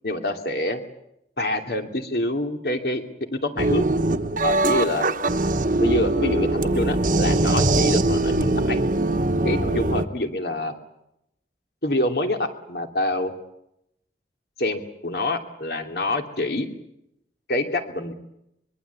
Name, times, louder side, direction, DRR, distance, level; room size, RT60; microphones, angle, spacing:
voice 1, 0.0-0.8 1.4-3.0 3.3-3.9 4.4-5.1 5.8-8.8 9.4-10.7 11.8-13.3 14.6-16.7 17.5-18.1, left 1 dB, 60° left, 5 dB, 2.8 m, -26 dB
sound 1, 3.6-10.0, right 2 dB, 50° right, 1.2 m, -22 dB
24.0 x 23.0 x 8.4 m, 0.82 s
head